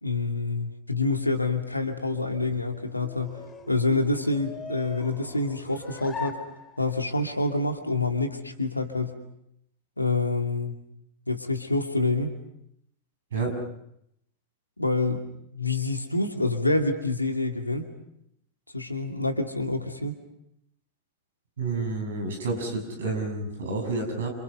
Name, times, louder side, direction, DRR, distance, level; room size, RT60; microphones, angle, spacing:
voice 1, 0.0-3.4 3.7-6.4 6.8-9.2 10.0-10.8 11.3-12.3 14.8-15.3 15.5-17.9 18.7-20.2, left 2 dB, 85° left, 5 dB, 2.6 m, -27 dB
sound 1, 2.2-7.2, left 6 dB, 20° left, 2.4 m, -42 dB
voice 2, 21.6-24.3, right 3 dB, 65° right, 4 dB, 7.1 m, -29 dB
28.5 x 28.0 x 5.5 m, 0.75 s
figure-of-eight pair, 90°, 0 cm